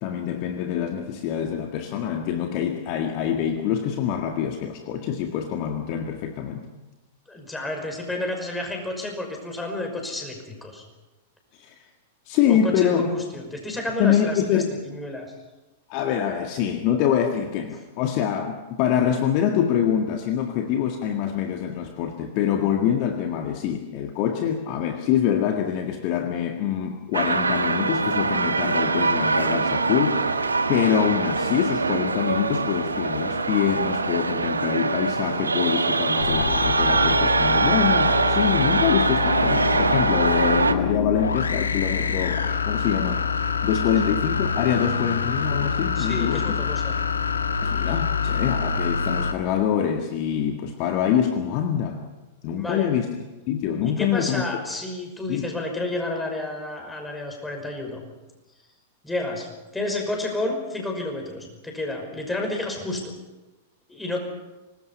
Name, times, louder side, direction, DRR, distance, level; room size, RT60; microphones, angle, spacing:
voice 1, 0.0-6.6 11.5-11.7 12.3-13.1 14.0-14.7 15.9-30.3 30.7-43.2 43.6-46.6 47.6-52.0 52.4-53.1 53.5-54.4 55.3-55.5, left 9 dB, 45° left, 4 dB, 1.8 m, -25 dB
voice 2, 7.3-10.8 12.5-15.3 46.0-46.9 52.5-52.9 53.8-58.0 59.0-63.2 63.9-64.2, left 2 dB, 10° left, 3 dB, 5.8 m, -31 dB
sound 1, 27.1-40.7, right 4 dB, 80° right, 1.3 m, -23 dB
sound 2, 36.2-49.3, left 5 dB, 75° left, 1.4 m, -26 dB
25.0 x 20.0 x 5.6 m, 1.1 s
figure-of-eight pair, 100°, 0 cm